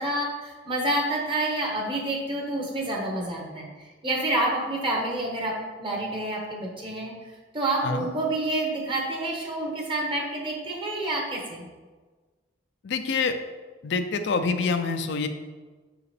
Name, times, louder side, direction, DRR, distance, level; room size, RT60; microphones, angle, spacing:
voice 1, 0.0-3.7 4.0-7.1 7.5-11.7, right 1 dB, 30° right, -1 dB, 1.2 m, -28 dB
voice 2, 12.8-13.4 13.8-15.3, left 4 dB, 65° left, 8 dB, 0.4 m, -26 dB
6.0 x 4.8 x 3.3 m, 1.3 s
head